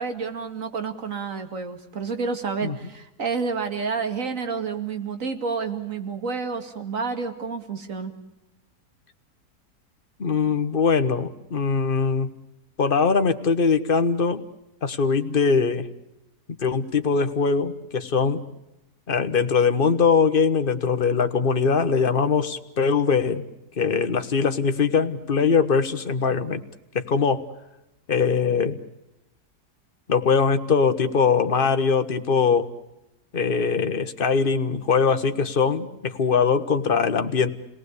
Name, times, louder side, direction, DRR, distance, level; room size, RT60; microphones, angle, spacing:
voice 1, 0.0-8.1, right 5 dB, 50° right, 7 dB, 2.7 m, -29 dB
voice 2, 10.2-12.3 12.8-14.4 14.8-15.9 16.6-18.5 19.1-23.4 23.8-26.6 26.9-27.5 28.1-28.8 30.1-32.7 33.3-37.5, left 5 dB, 35° left, 9 dB, 1.4 m, -22 dB
30.0 x 19.0 x 8.4 m, 0.91 s
omnidirectional pair, 1.7 m